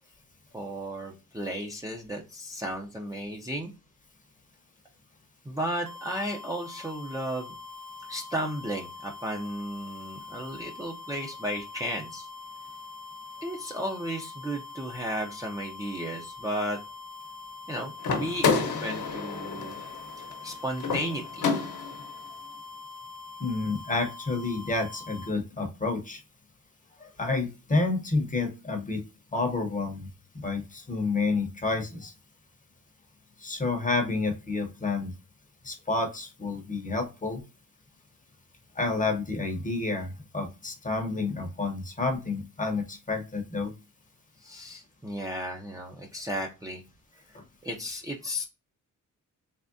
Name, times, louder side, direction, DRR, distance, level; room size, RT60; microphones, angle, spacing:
voice 1, 0.5-3.7 5.4-7.5 8.1-12.3 13.4-16.8 17.7-19.8 20.4-21.5 44.4-46.8 47.6-48.5, equal, 10° right, -1 dB, 0.5 m, -34 dB
sound 1, 5.9-25.3, left 4 dB, 75° right, 0.8 m, -44 dB
sound 2, 18.0-22.1, left 5 dB, 65° left, 0.9 m, -29 dB
voice 2, 23.4-26.2 27.0-29.0 29.3-30.1 30.3-32.1 33.4-35.1 35.6-37.4 38.8-43.7, left 3 dB, 25° left, 4 dB, 0.8 m, -29 dB
3.5 x 3.2 x 2.5 m, 0.30 s
wide cardioid pair, 155°, 32 cm